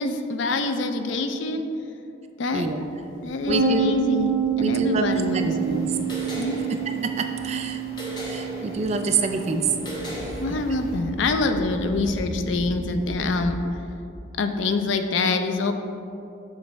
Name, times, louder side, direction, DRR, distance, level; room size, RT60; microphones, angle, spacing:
voice 1, 0.0-1.7 2.4-2.7 3.2-4.3 4.6-5.9 6.4-6.9 10.4-13.6 14.4-15.7, left 3 dB, 75° left, 7 dB, 0.5 m, -25 dB
sound 1, 2.6-13.5, equal, 40° left, 0.7 m, -40 dB
voice 2, 3.5-3.9 4.6-5.1 5.3-5.9 6.7-7.8 8.3-9.7, right 4 dB, 35° right, 6 dB, 0.4 m, -26 dB
sound 2, 3.5-12.9, right 7 dB, 85° right, 1.0 m, -29 dB
sound 3, 5.1-11.0, left 1 dB, 25° left, 1.0 m, -38 dB
7.2 x 3.2 x 6.1 m, 2.7 s
head